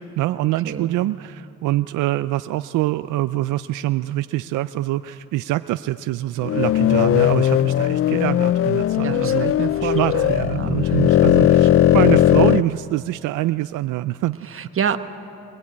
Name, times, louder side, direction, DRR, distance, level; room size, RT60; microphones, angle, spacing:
voice 1, 0.0-9.5 9.8-14.4, right 16 dB, 85° right, 12 dB, 0.5 m, -24 dB
voice 2, 0.6-1.0 9.0-11.0 14.4-15.0, right 7 dB, 45° right, 9 dB, 1.2 m, -28 dB
sound 1, 6.4-12.6, left 11 dB, 50° left, 0.4 m, -17 dB
22.5 x 21.0 x 8.6 m, 2.7 s
cardioid pair, 90°, 30 cm